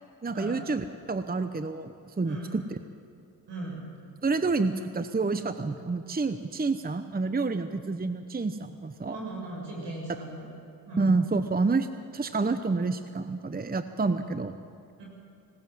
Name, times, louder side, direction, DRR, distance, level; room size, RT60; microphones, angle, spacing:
voice 1, 0.2-2.8 4.2-9.2 11.0-11.9 12.1-14.5, right 3 dB, 20° right, 10 dB, 0.9 m, -28 dB
voice 2, 3.5-3.8 9.1-10.4 10.8-11.1 15.0-15.1, right 2 dB, 75° right, -2 dB, 7.1 m, -38 dB
20.0 x 18.0 x 7.7 m, 2.4 s
supercardioid pair, 45°, 43 cm